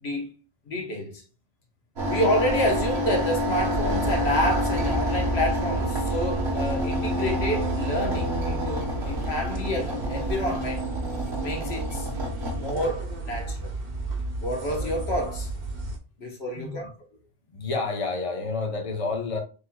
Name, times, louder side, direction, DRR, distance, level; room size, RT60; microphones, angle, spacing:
voice 1, 0.0-0.3 0.7-1.2 2.1-10.8 11.4-12.1 12.5-13.7 14.4-15.5 16.2-16.9, equal, 75° left, 1.4 m, -28 dB
sound 1, 2.0-12.7, equal, 85° right, 1.7 m, -28 dB
sound 2, 2.5-16.0, right 1 dB, 45° right, 1.1 m, -33 dB
voice 2, 16.5-16.9 17.5-19.4, left 3 dB, 35° left, 0.9 m, -29 dB
6.6 x 2.9 x 2.3 m
omnidirectional pair, 1.1 m